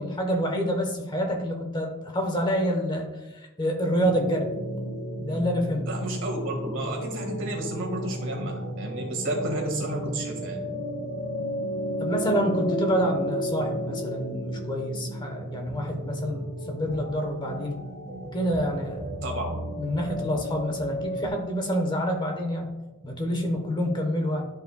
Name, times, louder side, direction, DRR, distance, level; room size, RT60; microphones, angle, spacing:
voice 1, 0.0-3.1 3.6-4.5 5.2-5.9 12.0-17.8 18.3-19.0 19.8-22.7 23.0-24.4, equal, 20° left, 3 dB, 1.0 m, -27 dB
sound 1, 4.0-21.3, equal, 35° right, 1.7 m, -33 dB
voice 2, 5.9-10.6 19.2-19.5, right 1 dB, 60° right, 0 dB, 1.8 m, -31 dB
12.0 x 5.4 x 2.3 m, 1.1 s
head